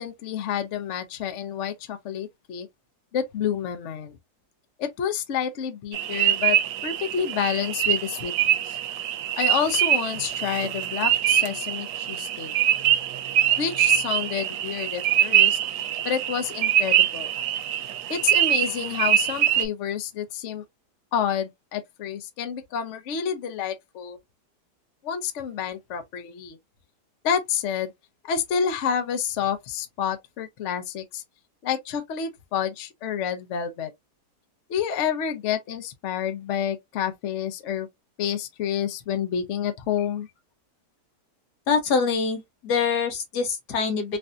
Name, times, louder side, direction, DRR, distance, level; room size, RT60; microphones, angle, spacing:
voice 1, 0.0-2.7 3.1-4.2 4.8-6.6 6.8-8.8 9.4-12.5 13.6-17.3 18.1-20.6 21.1-24.2 25.0-26.6 27.2-27.9 28.3-31.2 31.6-33.9 34.7-37.9 38.2-40.3, left 8 dB, 55° left, 0.9 m, -29 dB
sound 1, 5.9-19.6, right 11 dB, 75° right, 1.1 m, -24 dB
voice 2, 41.7-44.2, left 5 dB, 75° left, 1.4 m, -24 dB
3.3 x 2.6 x 2.4 m
omnidirectional pair, 1.8 m